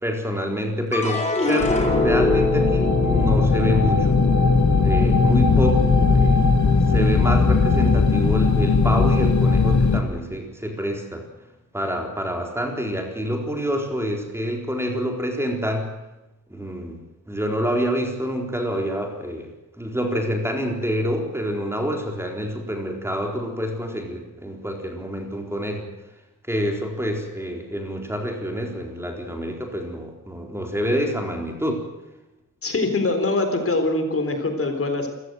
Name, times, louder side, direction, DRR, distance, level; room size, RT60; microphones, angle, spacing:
voice 1, 0.0-4.2 4.8-6.5 6.9-11.2 11.7-15.9 16.5-17.0 17.3-19.5 19.8-25.8 26.5-31.8, equal, 10° right, 2 dB, 4.1 m, -27 dB
sound 1, 0.9-7.4 7.8-8.5, left 2 dB, 20° left, 4.7 m, -26 dB
sound 2, 1.6-10.0, left 4 dB, 65° left, 2.8 m, -18 dB
voice 2, 32.6-35.1, left 2 dB, 45° left, 6 dB, 3.9 m, -23 dB
28.5 x 16.0 x 8.0 m, 1.0 s
wide cardioid pair, 160°, 31 cm